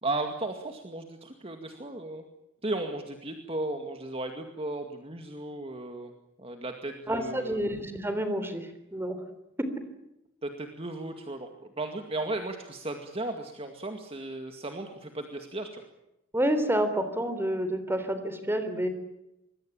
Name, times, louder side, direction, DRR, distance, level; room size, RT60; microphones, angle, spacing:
voice 1, 0.0-2.2 2.6-6.1 6.4-7.6 10.4-11.5 11.8-15.8, right 2 dB, 30° right, 5 dB, 2.1 m, -35 dB
voice 2, 7.1-9.2 16.3-18.9, right 1 dB, 10° right, 9 dB, 3.5 m, -29 dB
25.5 x 21.5 x 8.8 m, 0.88 s
head